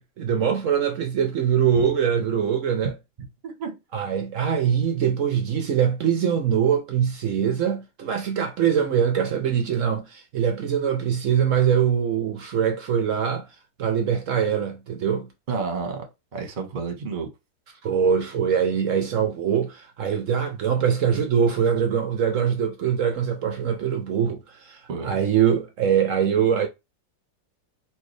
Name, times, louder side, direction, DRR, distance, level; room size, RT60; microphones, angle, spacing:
voice 1, 0.2-2.9 3.9-13.5 13.8-15.3 17.8-26.7, right 8 dB, 75° right, 0.7 m, -23 dB
voice 2, 3.4-3.8 15.5-16.0 16.3-17.3 24.9-25.1, right 4 dB, 35° right, 0.8 m, -30 dB
4.4 x 2.6 x 3.2 m
omnidirectional pair, 2.0 m